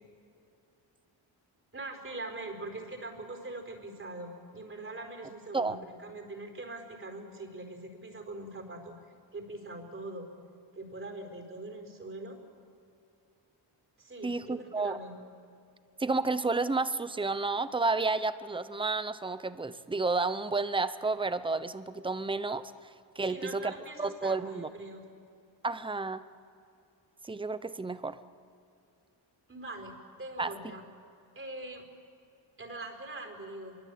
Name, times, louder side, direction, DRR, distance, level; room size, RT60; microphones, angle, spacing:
voice 1, 1.7-10.3 10.7-12.4 14.0-15.1 23.2-25.0 29.5-30.8 31.3-31.8 32.6-33.8, right 2 dB, 30° right, 5 dB, 4.6 m, -42 dB
voice 2, 14.2-15.0 16.0-22.7 23.2-23.7 24.0-24.7 25.6-26.2 27.2-28.2 30.4-30.5, right 3 dB, 10° right, 13 dB, 0.8 m, -31 dB
26.0 x 23.5 x 8.7 m, 2.6 s
cardioid pair, 125°, 45 cm